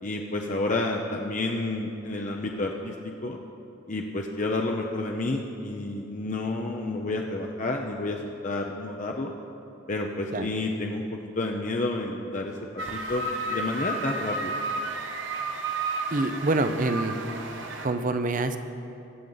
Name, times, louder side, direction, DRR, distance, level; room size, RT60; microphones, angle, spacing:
voice 1, 0.0-3.4 3.9-8.2 8.4-9.3 9.9-11.0 11.4-14.5, left 2 dB, 40° left, 1 dB, 0.6 m, -30 dB
sound 1, 12.8-17.9, right 2 dB, 75° right, 1.1 m, -32 dB
voice 2, 16.1-17.1 17.8-18.6, right 2 dB, 45° right, 9 dB, 0.7 m, -26 dB
22.0 x 8.0 x 3.9 m, 2.9 s
head